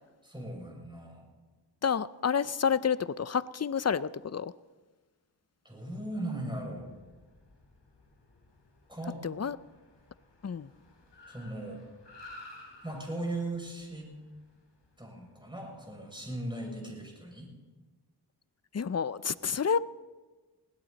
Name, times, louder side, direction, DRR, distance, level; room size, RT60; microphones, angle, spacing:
voice 1, 0.2-1.3 5.6-6.9 8.9-9.2 11.3-11.8 12.8-14.2 15.0-17.5, right 1 dB, 10° right, 0 dB, 6.6 m, -38 dB
voice 2, 1.8-4.5 9.2-9.6 10.4-10.7 18.7-19.8, left 7 dB, 40° left, 16 dB, 0.6 m, -29 dB
Car, 6.4-15.8, left 2 dB, 90° left, 3.8 m, -55 dB
20.5 x 16.5 x 4.1 m, 1.3 s
cardioid pair, 40°, 42 cm